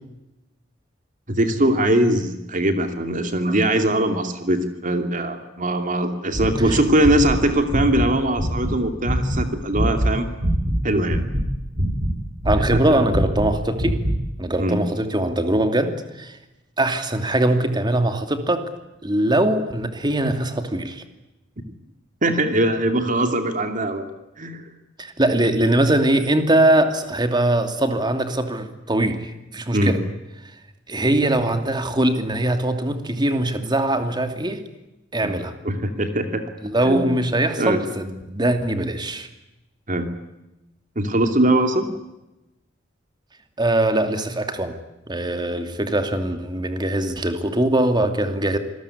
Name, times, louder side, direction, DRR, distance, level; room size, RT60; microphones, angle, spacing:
voice 1, 1.3-10.3 10.8-11.2 12.6-12.8 14.6-14.8 22.2-24.0 24.4-24.7 25.3-25.4 29.7-29.9 35.2-35.3 35.6-36.4 36.8-37.2 37.6-37.8 39.9-40.1 41.0-41.9, right 1 dB, 45° right, 7 dB, 2.7 m, -21 dB
sound 1, 6.3-8.7 9.0-9.4 9.7-10.8 11.1-12.1 12.4-14.2, equal, 65° right, 6.3 m, -23 dB
voice 2, 12.4-14.0 14.4-16.4 16.8-18.7 19.0-21.0 25.0-30.0 30.9-34.6 35.1-35.5 36.6-39.3 43.6-44.8 45.1-48.6, right 1 dB, 25° right, 7 dB, 2.7 m, -21 dB
27.5 x 21.0 x 9.9 m, 0.96 s
head